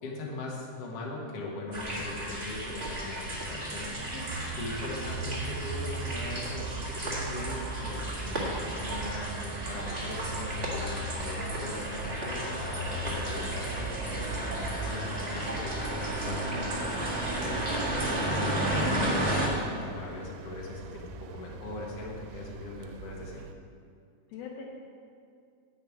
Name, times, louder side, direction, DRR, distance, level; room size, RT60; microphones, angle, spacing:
voice 1, 0.0-2.7 3.0-4.0 4.6-17.1 17.3-23.4, left 2 dB, 50° left, -2 dB, 2.0 m, -40 dB
sound 1, 1.7-19.5, right 1 dB, 65° right, 0.6 m, -33 dB
voice 2, 2.4-3.2 4.1-4.3 4.9-5.1 24.3-24.6, left 6 dB, 75° left, 0 dB, 2.7 m, -44 dB
sound 2, 3.9-23.5, right 4 dB, 90° right, 2.7 m, -41 dB
10.5 x 5.4 x 8.5 m, 2.3 s
omnidirectional pair, 4.6 m